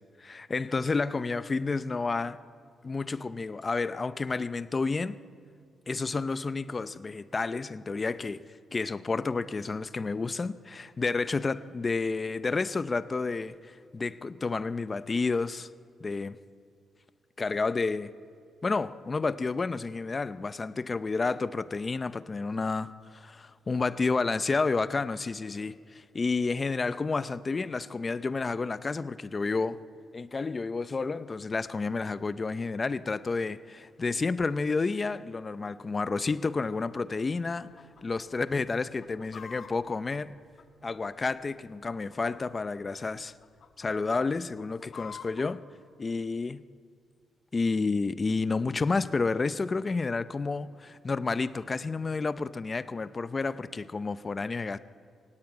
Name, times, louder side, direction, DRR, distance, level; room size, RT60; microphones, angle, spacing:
voice 1, 0.2-2.4 2.8-5.2 5.9-8.4 8.7-15.7 16.0-16.4 17.4-18.1 18.6-29.8 30.1-37.7 38.0-40.4 40.8-43.3 43.8-45.6 46.0-46.6 47.5-54.8, left 4 dB, 25° left, 0.6 m, -30 dB
Chicken rooster, 37.6-38.0 38.3-38.4 38.8-41.1 41.8-42.6 42.9-43.1 43.4-43.9 44.3-45.5, left 7 dB, 50° left, 1.2 m, -47 dB
22.5 x 17.5 x 8.9 m
cardioid pair, 145°, 0 cm